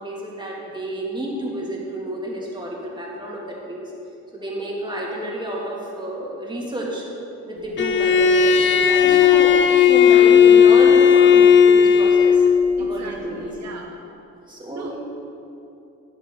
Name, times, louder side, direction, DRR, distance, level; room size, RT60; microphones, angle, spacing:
voice 1, 0.0-3.9 4.3-7.1 7.5-12.4 12.8-13.5 14.5-15.0, right 1 dB, 15° right, -3 dB, 2.4 m, -30 dB
Bowed string instrument, 7.8-12.6, left 7 dB, 40° left, 0.6 m, -13 dB
voice 2, 9.0-9.5 12.8-14.0 14.8-14.9, right 4 dB, 65° right, 2 dB, 0.9 m, -38 dB
12.0 x 8.0 x 3.9 m, 2.8 s
cardioid pair, 90°, 30 cm